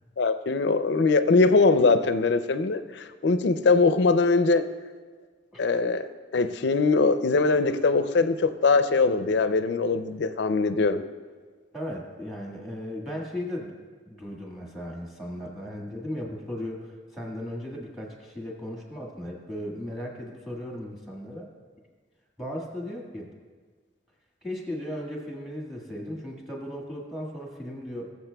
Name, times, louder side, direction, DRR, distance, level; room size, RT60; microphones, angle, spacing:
voice 1, 0.2-4.7 5.6-11.0, left 3 dB, 70° left, 10 dB, 0.4 m, -22 dB
voice 2, 11.7-13.7 14.1-21.5 22.4-23.3 24.4-28.1, left 1 dB, ahead, -1 dB, 1.6 m, -36 dB
20.5 x 7.1 x 2.3 m, 1.5 s
head